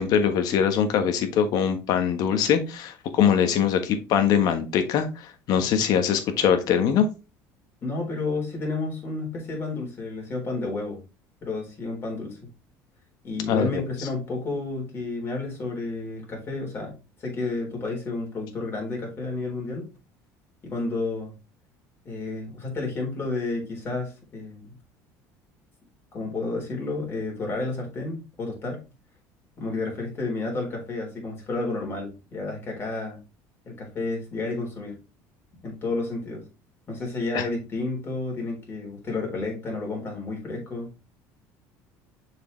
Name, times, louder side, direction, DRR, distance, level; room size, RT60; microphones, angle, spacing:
voice 1, 0.0-5.1 5.5-7.1 13.5-13.7 37.3-37.4, left 8 dB, 60° left, 8 dB, 1.3 m, -22 dB
voice 2, 7.8-11.0 11.4-12.4 13.2-19.9 20.6-21.3 22.1-24.7 26.1-28.8 29.6-33.2 33.7-35.0 35.6-36.4 36.9-40.9, left 3 dB, 30° left, 0 dB, 3.8 m, -31 dB
6.7 x 4.8 x 3.3 m, 0.29 s
cardioid pair, 115°, 7 cm